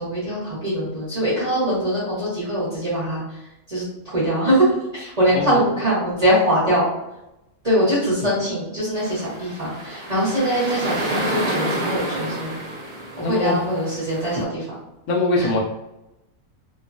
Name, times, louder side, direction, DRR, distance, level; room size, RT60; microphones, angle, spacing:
voice 1, 0.0-3.4 3.7-4.7 4.9-6.8 7.6-12.6 13.2-14.7 15.4-15.5, equal, 30° right, -11 dB, 1.1 m, -22 dB
sound 1, 9.0-14.4, right 1 dB, 65° right, 0.4 m, -29 dB
voice 2, 13.2-13.6 15.1-15.6, left 2 dB, 70° left, -1 dB, 0.9 m, -21 dB
3.0 x 2.3 x 2.5 m, 0.94 s
omnidirectional pair, 1.4 m